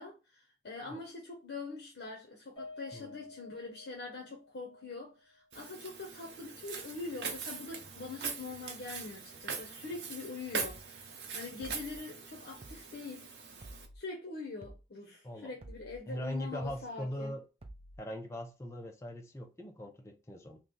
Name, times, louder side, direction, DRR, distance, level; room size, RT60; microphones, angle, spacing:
voice 1, 0.0-13.3 13.9-17.4, left 3 dB, 70° left, 0.8 m, -44 dB
Piano, 2.6-7.0 7.4-7.6 8.0-8.1, left 2 dB, 30° left, 1.4 m, -53 dB
Walk footsteps, 5.5-13.9, right 5 dB, 75° right, 0.7 m, -42 dB
sound 1, 10.6-10.8 11.6-12.0 12.6-12.8 13.6-14.0 14.6-14.8 15.6-16.0 16.6-16.8 17.6-18.0, right 1 dB, 30° right, 0.5 m, -50 dB
voice 2, 16.1-17.4 18.0-20.6, equal, 15° left, 0.5 m, -40 dB
3.1 x 2.7 x 3.8 m
head